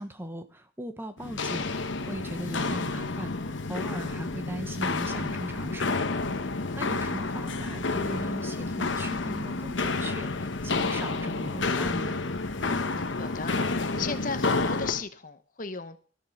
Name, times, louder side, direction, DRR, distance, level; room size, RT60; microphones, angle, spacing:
voice 1, 0.0-6.2 6.5-12.2, right 1 dB, 10° right, 8 dB, 1.1 m, -38 dB
Walk footsteps, 1.2-15.0, left 3 dB, 70° left, 1.1 m, -30 dB
voice 2, 12.7-16.0, left 5 dB, 45° left, 11 dB, 0.9 m, -36 dB
13.5 x 7.4 x 6.5 m, 0.41 s
head